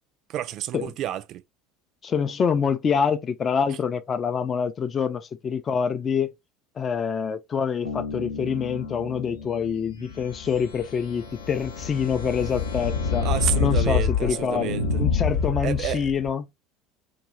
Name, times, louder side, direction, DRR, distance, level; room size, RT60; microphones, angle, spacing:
voice 1, 0.3-1.4 3.7-3.8 13.2-15.0 15.6-16.1, right 12 dB, 50° right, 0.3 m, -30 dB
voice 2, 2.0-6.3 6.8-13.3 13.6-14.7 15.0-16.5, left 6 dB, 35° left, 0.4 m, -26 dB
Bass guitar, 7.8-11.4, left 4 dB, 90° right, 0.6 m, -38 dB
sound 1, 9.9-16.3, left 5 dB, 80° left, 0.7 m, -27 dB
2.7 x 2.3 x 3.1 m
figure-of-eight pair, 70°, 0 cm